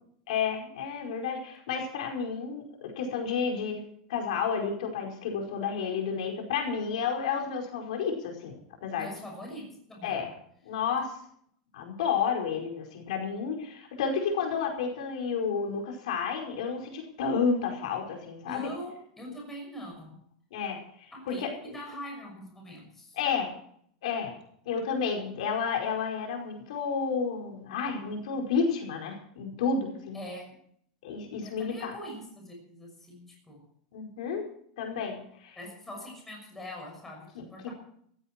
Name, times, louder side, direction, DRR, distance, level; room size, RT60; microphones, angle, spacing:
voice 1, 0.3-3.8 4.1-8.5 8.8-9.1 10.0-10.3 10.6-11.2 11.7-18.7 20.5-21.5 23.2-23.5 24.0-24.3 24.6-30.2 31.0-31.9 33.9-34.5 34.8-35.6 37.6-37.7, left 6 dB, 70° left, 2 dB, 5.0 m, -31 dB
voice 2, 9.0-10.2 18.4-20.2 21.1-23.2 30.1-30.5 31.4-33.6 35.5-37.7, equal, 5° left, 0 dB, 6.3 m, -42 dB
17.0 x 15.0 x 4.6 m, 0.65 s
supercardioid pair, 175°, 4 cm